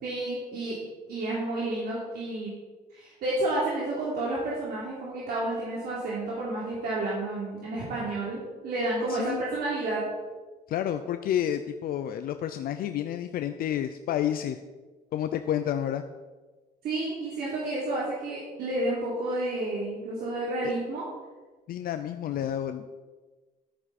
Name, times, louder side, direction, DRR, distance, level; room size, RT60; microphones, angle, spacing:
voice 1, 0.0-0.8 1.1-2.5 2.9-10.0 16.8-21.0, right 2 dB, 65° right, -6 dB, 3.4 m, -30 dB
voice 2, 9.1-9.4 10.7-14.6 15.1-16.0 21.7-23.1, left 10 dB, 60° left, 8 dB, 0.6 m, -30 dB
13.0 x 9.0 x 4.3 m, 1.3 s
cardioid pair, 110°, 17 cm